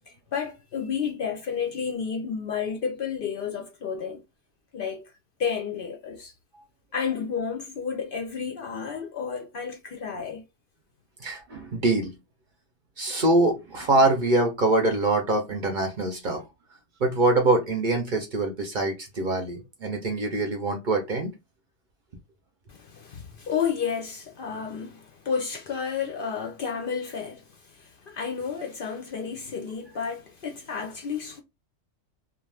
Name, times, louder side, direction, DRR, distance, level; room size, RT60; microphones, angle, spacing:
voice 1, 0.1-4.2 4.7-5.0 5.4-6.3 6.9-10.4 22.7-31.4, left 6 dB, 60° left, 0.6 m, -31 dB
voice 2, 11.2-12.1 13.0-16.4 17.0-21.3, right 2 dB, 50° right, 0.7 m, -24 dB
2.4 x 2.4 x 3.2 m
omnidirectional pair, 1.2 m